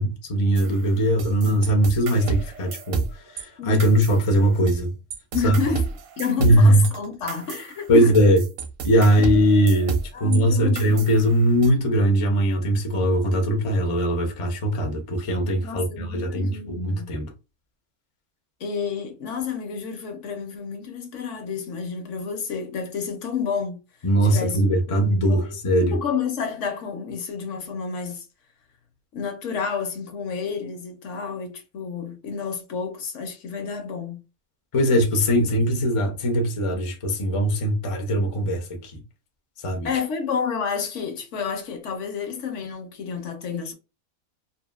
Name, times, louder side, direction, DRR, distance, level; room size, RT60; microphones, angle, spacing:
voice 1, 0.0-4.9 5.4-5.5 6.4-6.9 7.9-8.4 8.8-17.3 24.0-26.0 34.7-39.0 39.6-39.9, equal, 50° left, 0.4 m, -20 dB
sound 1, 0.6-3.4 3.8-4.8 5.1-10.4 10.8-11.7, right 5 dB, 70° right, 1.0 m, -31 dB
voice 2, 3.6-4.1 5.3-5.9 6.2-8.1 9.2-9.3 10.1-11.1 15.6-17.1 18.6-23.8 24.2-24.6 24.9-25.5 25.8-28.2 29.1-34.2 39.8-43.7, left 6 dB, 65° left, 0.9 m, -30 dB
2.8 x 2.6 x 2.2 m
omnidirectional pair, 1.5 m